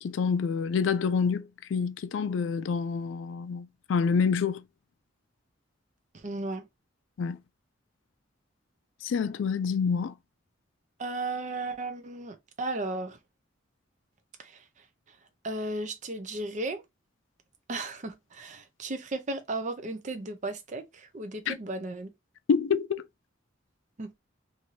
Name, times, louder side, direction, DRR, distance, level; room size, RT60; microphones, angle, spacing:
voice 1, 0.0-4.6 7.2-7.4 9.0-10.1 21.5-21.6 22.5-23.1, left 6 dB, 80° left, 0.3 m, -27 dB
voice 2, 6.1-6.7 11.0-13.2 14.4-14.6 15.4-16.8 17.7-22.1 24.0-24.1, right 2 dB, 40° right, 0.6 m, -35 dB
2.7 x 2.6 x 3.0 m
head